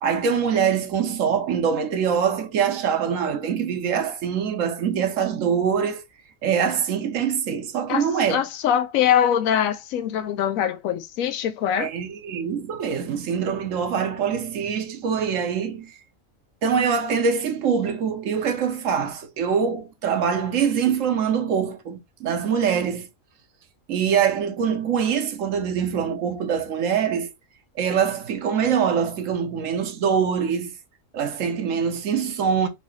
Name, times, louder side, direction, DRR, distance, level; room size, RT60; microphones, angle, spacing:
voice 1, 0.0-6.0 6.4-8.4 11.8-15.9 16.6-23.1 23.9-27.3 27.8-30.8 31.1-32.7, right 7 dB, 75° right, 1.1 m, -24 dB
voice 2, 7.9-11.9, left 9 dB, 85° left, 1.0 m, -23 dB
4.0 x 2.7 x 4.6 m
omnidirectional pair, 1.4 m